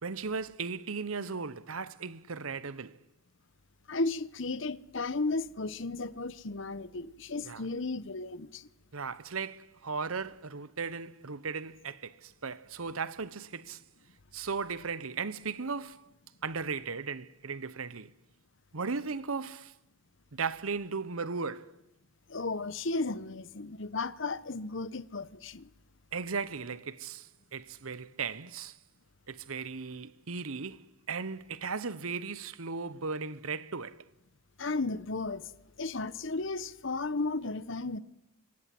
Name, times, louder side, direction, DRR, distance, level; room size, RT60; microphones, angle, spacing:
voice 1, 0.0-3.0 7.4-7.6 8.9-13.8 14.3-16.1 16.4-18.1 18.7-19.7 20.3-21.8 26.1-28.8 29.3-34.1, right 5 dB, 85° right, 1.0 m, -36 dB
voice 2, 3.9-8.7 22.3-25.7 34.6-35.5 35.8-38.0, left 3 dB, 60° left, 1.0 m, -34 dB
26.0 x 25.0 x 7.8 m
head